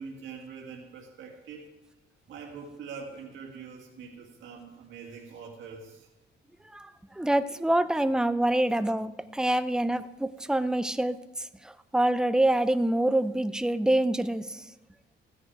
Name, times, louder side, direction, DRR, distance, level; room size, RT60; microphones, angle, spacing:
voice 1, 0.0-1.7 2.3-6.1, right 5 dB, 85° right, -1 dB, 2.0 m, -43 dB
voice 2, 6.7-14.7, right 1 dB, 5° right, 12 dB, 0.4 m, -26 dB
15.0 x 10.0 x 4.7 m, 1.0 s
cardioid pair, 135°, 19 cm